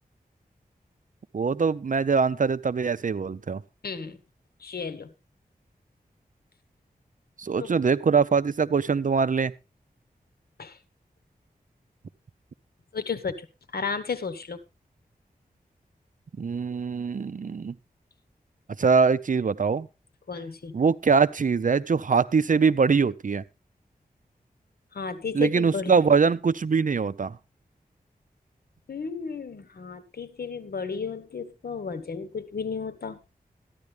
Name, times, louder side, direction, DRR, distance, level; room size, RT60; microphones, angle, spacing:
voice 1, 1.3-3.6 7.4-9.5 16.4-17.7 18.8-19.9 20.7-23.4 25.3-27.4, right 5 dB, 55° right, 0.7 m, -23 dB
voice 2, 3.8-4.2 4.6-5.1 7.6-7.8 10.6-10.8 12.9-13.5 13.7-14.6 20.3-20.7 24.9-26.0 28.9-33.2, left 5 dB, 75° left, 1.4 m, -33 dB
13.5 x 10.5 x 3.4 m
cardioid pair, 55°, 16 cm